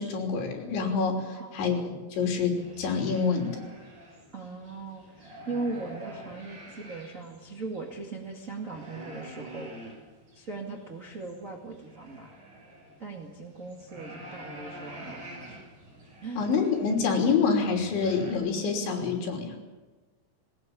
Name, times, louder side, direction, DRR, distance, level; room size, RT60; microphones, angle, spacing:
voice 1, 0.0-1.2 1.5-1.8 2.1-3.6 16.4-19.5, left 5 dB, 70° left, 2 dB, 5.5 m, -26 dB
voice 2, 1.3-1.6 4.3-9.7 10.3-12.3 13.0-15.2 15.5-15.6 16.2-16.5, right 3 dB, 80° right, 0 dB, 0.7 m, -39 dB
sound 1, 2.5-18.3, equal, 50° right, 8.4 m, -47 dB
20.0 x 19.0 x 8.6 m, 1.3 s
omnidirectional pair, 5.7 m